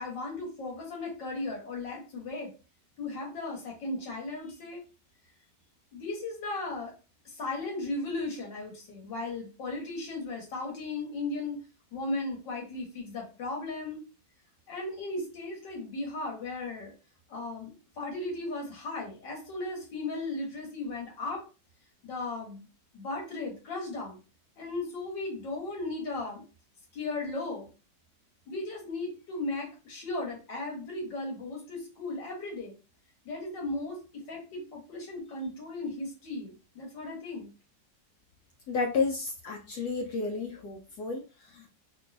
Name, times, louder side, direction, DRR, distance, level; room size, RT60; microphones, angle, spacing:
voice 1, 0.0-2.5 3.0-4.8 5.9-6.9 7.3-11.6 11.9-14.0 14.7-16.9 17.3-21.4 22.0-22.7 22.9-24.2 24.6-26.4 26.9-27.7 28.5-32.7 33.3-37.5, left 2 dB, 85° left, -1 dB, 1.9 m, -36 dB
voice 2, 38.7-41.7, left 4 dB, 70° left, 0 dB, 1.1 m, -32 dB
3.7 x 2.6 x 2.5 m, 0.32 s
omnidirectional pair, 1.9 m